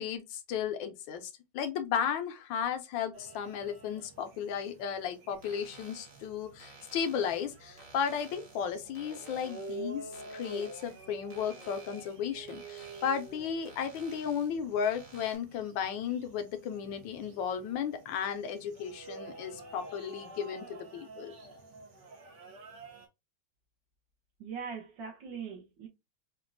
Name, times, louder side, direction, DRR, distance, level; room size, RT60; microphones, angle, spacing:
voice 1, 0.0-21.3, left 7 dB, 75° left, 1.3 m, -34 dB
sound 1, 3.1-23.1, right 2 dB, 55° right, 0.9 m, -49 dB
sound 2, 5.3-15.4, right 3 dB, 25° right, 0.9 m, -55 dB
voice 2, 24.4-25.9, right 6 dB, 70° right, 1.6 m, -41 dB
5.1 x 2.4 x 2.5 m
omnidirectional pair, 2.2 m